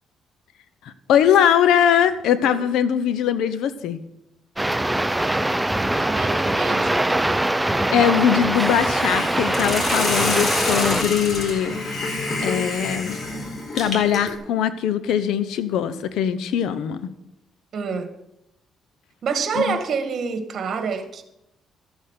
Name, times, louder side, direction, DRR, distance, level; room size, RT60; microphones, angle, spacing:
voice 1, 1.1-4.0 7.9-11.8 12.4-13.2 13.7-17.1 19.6-19.8, left 9 dB, 85° left, 13 dB, 1.0 m, -21 dB
sound 1, 4.6-11.0, right 1 dB, 10° right, 0.6 m, -22 dB
voice 2, 6.0-7.0 17.7-18.1 19.2-21.2, right 5 dB, 55° right, 7 dB, 2.0 m, -27 dB
Hiss, 8.5-14.4, left 3 dB, 55° left, 4.2 m, -28 dB
14.0 x 8.2 x 6.6 m, 0.87 s
cardioid pair, 90°, 0 cm